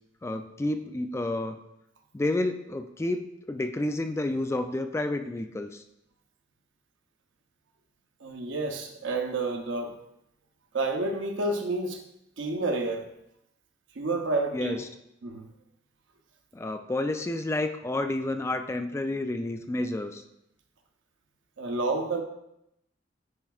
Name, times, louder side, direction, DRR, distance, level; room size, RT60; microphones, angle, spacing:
voice 1, 0.2-1.6 2.1-5.8 14.5-14.9 16.5-20.2, left 2 dB, 15° left, 7 dB, 0.3 m, -30 dB
voice 2, 8.2-10.0 10.7-12.0 12.4-13.1 13.9-14.8 15.2-15.5 21.6-22.2, right 2 dB, 85° right, 3 dB, 0.8 m, -29 dB
9.8 x 4.6 x 2.4 m, 0.81 s
head